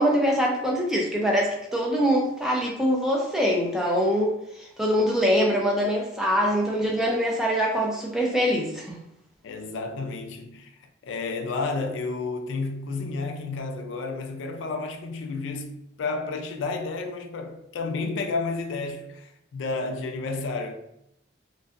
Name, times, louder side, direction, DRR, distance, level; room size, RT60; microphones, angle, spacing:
voice 1, 0.0-9.0, equal, ahead, 0.4 m, -24 dB
voice 2, 9.4-10.8 11.0-20.7, left 3 dB, 80° left, 0.3 m, -31 dB
2.6 x 2.2 x 2.4 m
head